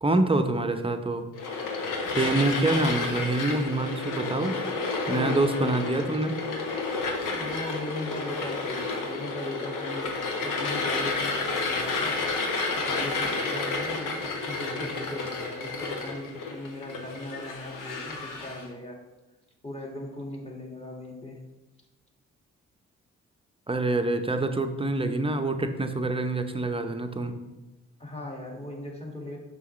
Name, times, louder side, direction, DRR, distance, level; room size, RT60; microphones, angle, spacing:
voice 1, 0.0-1.3 2.2-4.6 5.1-6.4 23.7-27.4, right 2 dB, 15° right, 7 dB, 0.7 m, -26 dB
sound 1, 1.4-18.7, left 3 dB, 70° left, 1.0 m, -31 dB
voice 2, 5.0-6.2 7.3-12.3 12.7-19.0 19.6-21.4 28.0-29.4, left 1 dB, 20° left, -1 dB, 1.9 m, -38 dB
5.7 x 5.6 x 3.1 m, 1.1 s
hypercardioid pair, 45°, 33 cm